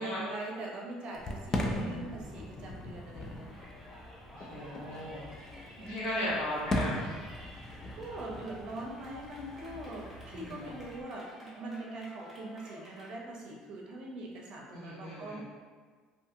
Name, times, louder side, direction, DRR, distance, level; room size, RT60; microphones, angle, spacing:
voice 1, 0.0-3.5 5.8-6.4 7.9-15.4, right 2 dB, 50° right, -1 dB, 0.6 m, -42 dB
Fireworks, 1.1-11.0, left 1 dB, 25° left, 0.3 m, -39 dB
voice 2, 1.8-2.2 4.3-5.5 5.8-7.1 10.3-10.7 14.7-15.4, left 1 dB, 75° left, -9 dB, 1.3 m, -37 dB
Yell, 3.4-13.1, left 1 dB, 5° right, 1.0 m, -52 dB
2.7 x 2.6 x 2.5 m, 1.5 s
cardioid pair, 115°, 2 cm